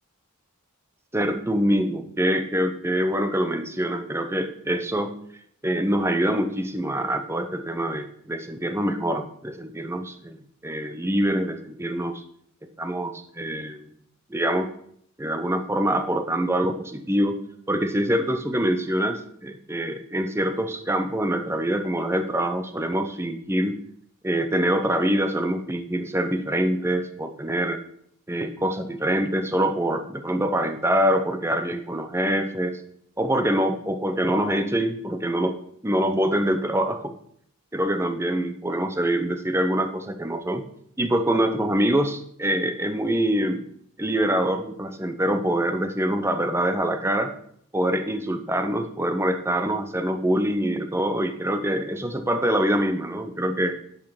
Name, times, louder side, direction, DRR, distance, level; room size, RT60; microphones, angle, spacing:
voice 1, 1.1-5.2 5.6-10.4 10.6-12.2 12.8-13.9 14.3-14.7 15.2-17.4 17.7-23.7 24.2-27.8 28.3-32.8 33.2-35.6 35.8-37.1 37.7-40.7 41.0-43.7 44.0-47.3 47.7-53.8, right 1 dB, 10° right, 8 dB, 0.8 m, -25 dB
10.5 x 5.6 x 5.9 m, 0.65 s
head